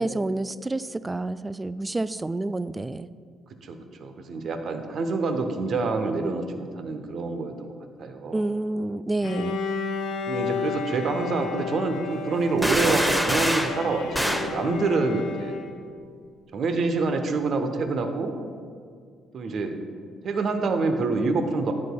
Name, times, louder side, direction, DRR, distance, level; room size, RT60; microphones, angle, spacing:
voice 1, 0.0-3.1 8.3-9.7, right 2 dB, 20° right, 15 dB, 0.3 m, -29 dB
voice 2, 3.6-7.7 8.0-8.4 10.3-15.5 16.5-18.4 19.3-19.7 20.2-21.7, right 3 dB, 55° right, 7 dB, 0.8 m, -26 dB
Bowed string instrument, 9.2-16.0, left 5 dB, 65° left, 0.6 m, -32 dB
sound 1, 12.6-13.8 14.1-14.5, equal, ahead, 0.8 m, -24 dB
12.0 x 9.7 x 2.3 m, 2.2 s
hypercardioid pair, 45°, 0 cm